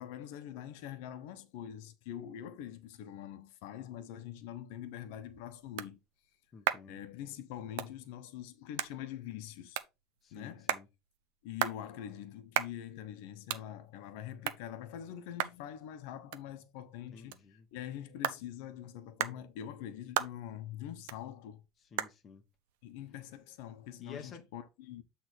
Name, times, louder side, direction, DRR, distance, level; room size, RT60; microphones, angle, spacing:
voice 1, 0.0-6.0 6.9-9.8 10.3-10.7 11.4-21.6 22.8-25.0, left 11 dB, 70° left, 1.0 m, -44 dB
sound 1, 4.9-24.2, right 12 dB, 85° right, 0.7 m, -41 dB
voice 2, 6.5-7.0 10.2-10.9 17.1-17.7 21.8-22.4 24.0-24.5, left 6 dB, 25° left, 1.1 m, -51 dB
8.2 x 3.4 x 4.4 m
cardioid pair, 165°, 0 cm